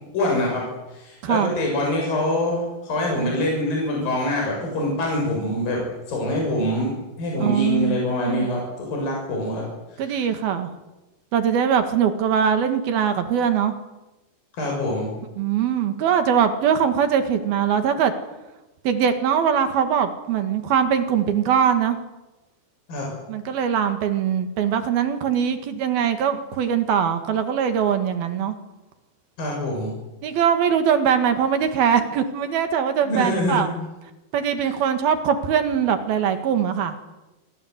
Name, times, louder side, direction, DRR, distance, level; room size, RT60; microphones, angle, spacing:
voice 1, 0.1-0.6 0.9-5.8 6.1-9.7 9.9-10.2 14.5-15.1 22.9-23.1 29.4-30.0 33.0-33.6 34.6-34.7, left 1 dB, 55° left, -1 dB, 8.8 m, -25 dB
voice 2, 7.4-8.5 10.0-10.7 11.3-13.7 15.4-18.1 18.9-22.0 23.3-28.6 30.2-33.7 34.3-36.9, right 8 dB, 65° right, 8 dB, 3.6 m, -21 dB
27.5 x 25.0 x 8.2 m, 1.1 s
omnidirectional pair, 5.0 m